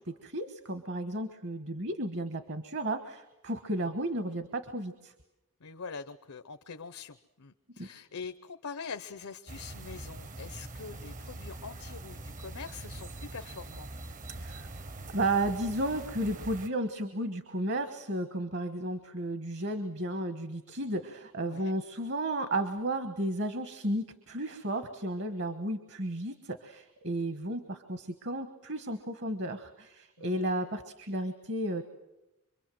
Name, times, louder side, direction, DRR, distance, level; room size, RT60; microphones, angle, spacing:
voice 1, 0.1-5.1 7.8-7.9 14.3-14.7 15.1-31.8, right 1 dB, 55° right, 8 dB, 1.4 m, -33 dB
voice 2, 5.6-13.9 21.5-21.7 25.6-25.7 30.2-30.5, left 5 dB, 80° left, 8 dB, 0.8 m, -44 dB
sound 1, 9.5-16.7, right 2 dB, 35° right, 0.8 m, -43 dB
26.0 x 23.5 x 7.7 m, 0.93 s
head